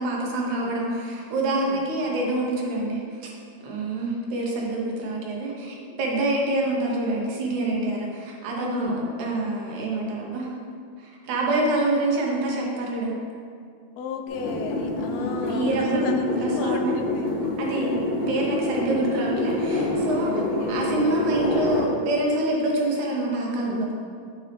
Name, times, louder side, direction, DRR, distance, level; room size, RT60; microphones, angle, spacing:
voice 1, 0.0-3.3 3.6-10.5 11.0-13.1 15.4-17.0 17.6-18.0 18.3-20.3 20.7-23.9, right 2 dB, 80° right, -2 dB, 2.4 m, -26 dB
voice 2, 8.6-9.0 14.0-17.3 17.6-18.0 20.2-20.8 23.5-23.8, left 5 dB, 85° left, 5 dB, 1.5 m, -33 dB
sound 1, 14.3-21.9, left 2 dB, 40° left, 1.8 m, -27 dB
7.1 x 5.1 x 3.3 m, 2.2 s
omnidirectional pair, 3.4 m